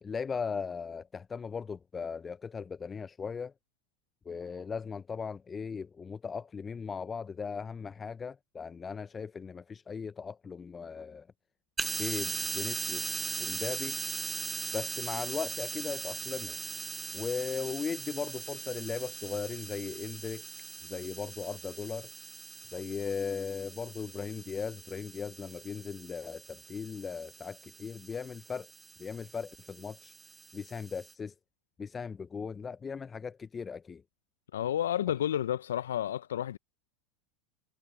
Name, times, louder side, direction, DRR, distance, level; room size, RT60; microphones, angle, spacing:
voice 1, 0.0-3.5 4.3-11.3 12.0-14.0 14.7-16.6 17.1-20.4 20.8-22.1 22.7-28.7 29.0-30.1 30.5-31.3 31.8-34.0, left 5 dB, 25° left, 0.5 m, -38 dB
sound 1, 11.8-31.1, right 4 dB, 15° right, 0.7 m, -40 dB
voice 2, 34.5-36.6, left 10 dB, 80° left, 0.5 m, -31 dB
hypercardioid pair, 90°, 0 cm